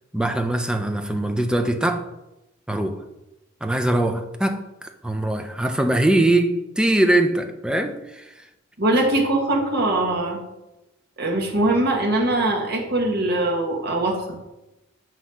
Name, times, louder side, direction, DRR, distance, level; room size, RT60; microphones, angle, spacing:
voice 1, 0.1-2.1 2.7-3.0 3.6-8.2, right 1 dB, 5° right, 6 dB, 0.4 m, -22 dB
voice 2, 8.8-10.4 11.2-14.4, right 2 dB, 55° right, 0 dB, 1.4 m, -22 dB
7.6 x 3.1 x 5.5 m, 0.97 s
head